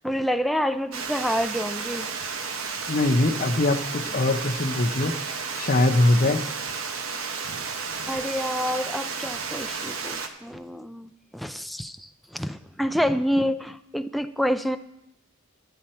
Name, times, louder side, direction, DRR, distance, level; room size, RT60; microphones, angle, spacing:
voice 1, 0.0-2.1 8.1-14.8, equal, ahead, 9 dB, 0.3 m, -28 dB
Water, 0.9-10.3, right 5 dB, 80° right, 0.9 m, -32 dB
voice 2, 2.9-5.2 5.6-6.4, left 2 dB, 45° left, 7 dB, 0.8 m, -22 dB
12.5 x 8.9 x 4.3 m, 0.86 s
head